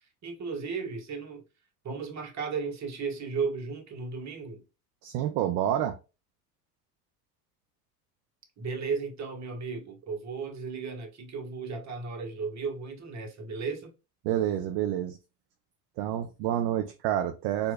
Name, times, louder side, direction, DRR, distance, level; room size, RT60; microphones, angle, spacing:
voice 1, 0.2-1.4 1.8-4.6 8.6-13.9, right 5 dB, 35° right, 1.3 m, -35 dB
voice 2, 5.0-6.0 14.2-15.2 16.0-17.7, right 11 dB, 55° right, 0.6 m, -28 dB
4.5 x 2.7 x 2.2 m
hypercardioid pair, 85°, 48 cm